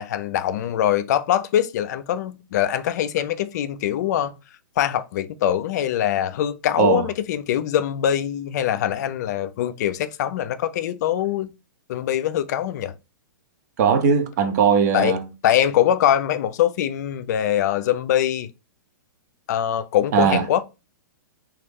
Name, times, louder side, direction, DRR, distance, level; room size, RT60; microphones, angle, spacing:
voice 1, 0.0-4.4 4.8-11.5 11.9-12.9 14.9-15.1 15.4-18.5 19.5-20.6, left 11 dB, 55° left, 0.4 m, -23 dB
voice 2, 13.8-15.3 20.1-20.4, right 6 dB, 55° right, 0.7 m, -19 dB
3.1 x 2.3 x 3.4 m
hypercardioid pair, 135°, 11 cm